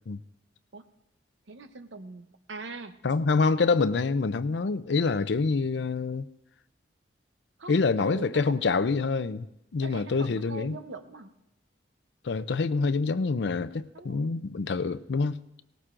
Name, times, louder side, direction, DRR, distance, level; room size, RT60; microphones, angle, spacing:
voice 1, 1.5-3.0 7.6-8.6 9.8-11.3 13.9-14.3, right 3 dB, 80° right, 0.8 m, -42 dB
voice 2, 3.0-6.3 7.7-9.5 9.7-10.8 12.2-15.4, left 4 dB, 70° left, 0.5 m, -26 dB
18.0 x 18.0 x 2.5 m
head